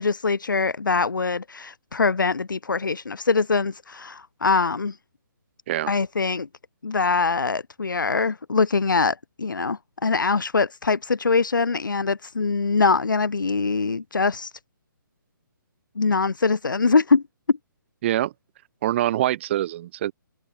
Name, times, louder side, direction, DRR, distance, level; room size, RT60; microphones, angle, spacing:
voice 1, 0.0-5.0 5.9-6.5 6.8-14.5 16.0-17.2 17.5-17.6, left 4 dB, 65° left, 1.8 m, -23 dB
voice 2, 18.0-18.3 18.8-20.1, right 13 dB, 35° right, 3.0 m, -24 dB
figure-of-eight pair, 135°, 11 cm